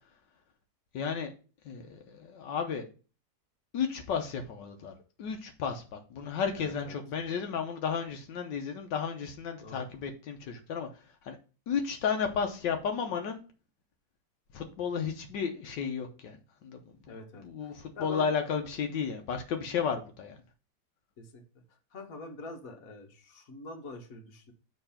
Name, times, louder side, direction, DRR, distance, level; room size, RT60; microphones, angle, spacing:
voice 1, 0.9-1.3 1.6-2.9 3.7-4.9 5.2-11.4 11.7-13.4 14.5-16.8 17.4-20.4, left 6 dB, 85° left, 1.5 m, -33 dB
voice 2, 6.6-7.0 9.6-9.8 17.1-18.3 21.2-21.4 21.9-24.5, left 3 dB, 55° left, 1.6 m, -45 dB
6.7 x 3.8 x 5.6 m
omnidirectional pair, 1.9 m